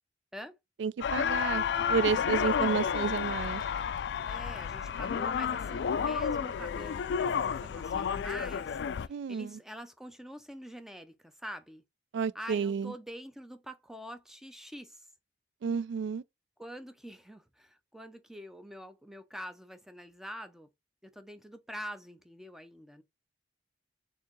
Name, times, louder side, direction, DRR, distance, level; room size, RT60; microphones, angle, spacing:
voice 1, 0.8-3.6 9.1-9.6 12.1-12.9 15.6-16.2, right 6 dB, 80° right, 0.3 m, -31 dB
sound 1, 1.0-9.1, left 7 dB, 70° left, 0.3 m, -31 dB
voice 2, 4.2-11.8 12.3-15.1 16.6-20.7 21.0-23.0, equal, ahead, 0.5 m, -45 dB
4.3 x 3.6 x 3.0 m
head